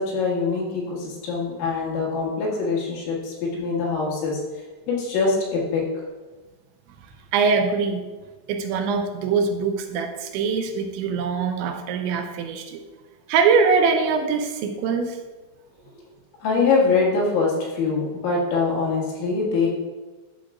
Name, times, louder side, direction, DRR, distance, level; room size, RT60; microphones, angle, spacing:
voice 1, 0.0-4.4 4.9-5.8 16.4-19.7, left 4 dB, 75° left, -4 dB, 4.2 m, -23 dB
voice 2, 7.3-8.0 8.5-12.8 13.3-15.1, right 5 dB, 85° right, 4 dB, 2.9 m, -22 dB
11.5 x 6.6 x 2.4 m, 1.2 s
omnidirectional pair, 5.4 m